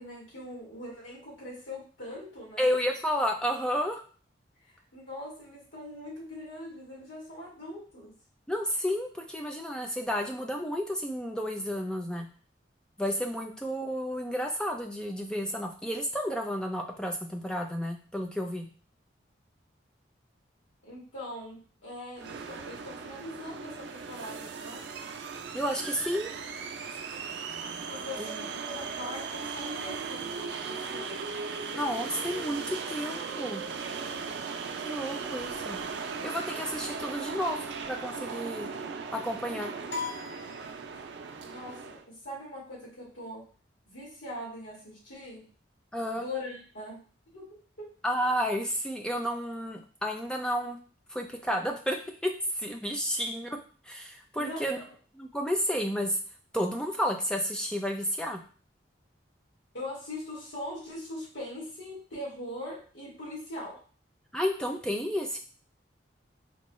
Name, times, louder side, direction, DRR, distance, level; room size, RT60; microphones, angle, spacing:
voice 1, 0.0-2.7 4.6-8.1 20.8-24.8 27.9-31.4 41.4-43.4 43.9-45.4 46.1-47.0 47.3-47.5 47.8-47.9 54.3-54.8 59.7-63.8, left 1 dB, 80° left, -5 dB, 1.9 m, -41 dB
voice 2, 2.6-4.0 8.5-12.3 13.0-18.7 25.5-26.3 28.2-28.4 31.7-33.6 34.8-35.8 36.2-38.7 39.1-39.7 45.9-46.2 48.0-50.8 51.1-53.6 53.8-54.8 55.1-56.2 56.5-58.4 64.3-65.4, equal, 5° left, 2 dB, 0.4 m, -31 dB
sound 1, 22.2-42.0, right 5 dB, 65° right, 0.4 m, -38 dB
sound 2, 39.9-41.3, left 4 dB, 60° left, 0.9 m, -39 dB
4.4 x 2.2 x 3.0 m, 0.40 s
head